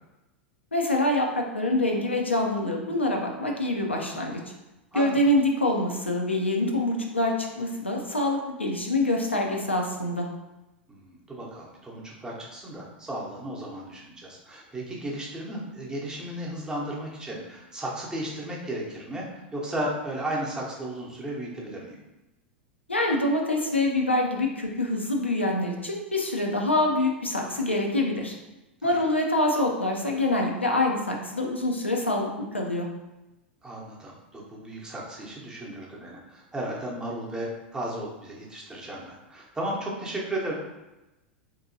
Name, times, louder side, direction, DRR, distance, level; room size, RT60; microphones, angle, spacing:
voice 1, 0.7-4.4 4.9-10.3 22.9-28.4 28.8-32.9, left 1 dB, 90° left, 1 dB, 0.5 m, -25 dB
voice 2, 10.9-19.3 19.5-22.0 28.8-29.0 33.6-40.5, right 1 dB, 10° right, -3 dB, 0.8 m, -34 dB
3.5 x 2.7 x 2.6 m, 1.0 s
figure-of-eight pair, 90°, 6 cm